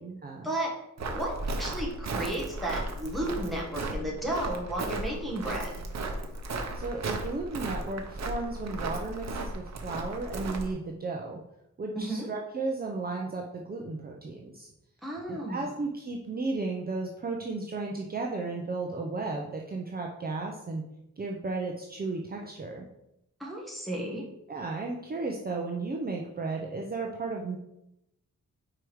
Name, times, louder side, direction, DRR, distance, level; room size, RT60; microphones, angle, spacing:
voice 1, 0.0-0.5 6.7-11.4 11.8-14.7 15.3-20.8 21.2-22.9 24.5-27.6, right 3 dB, 30° right, 0 dB, 0.6 m, -34 dB
Walk footsteps, 1.0-10.7, right 2 dB, 60° right, 0.8 m, -35 dB
voice 2, 1.1-5.8 11.9-12.3 15.0-15.6 23.4-24.2, right 1 dB, ahead, -4 dB, 1.4 m, -33 dB
4.9 x 4.7 x 4.6 m, 0.84 s
wide cardioid pair, 175°, 31 cm